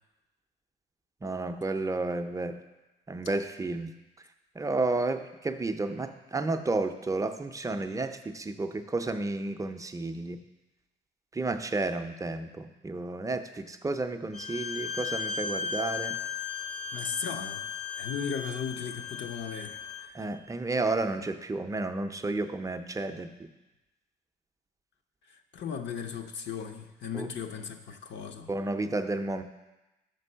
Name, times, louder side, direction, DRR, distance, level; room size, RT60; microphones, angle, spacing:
voice 1, 1.2-2.6 3.1-3.9 4.6-10.4 11.3-16.2 20.1-23.5 27.1-27.3 28.5-29.4, right 2 dB, 15° right, 8 dB, 0.5 m, -31 dB
Bowed string instrument, 14.3-20.1, left 6 dB, 30° left, 0.6 m, -36 dB
voice 2, 16.9-17.6 18.0-20.2 25.3-28.5, left 6 dB, 65° left, 4 dB, 0.7 m, -37 dB
5.9 x 5.3 x 5.5 m, 1.0 s
cardioid pair, 90°, 20 cm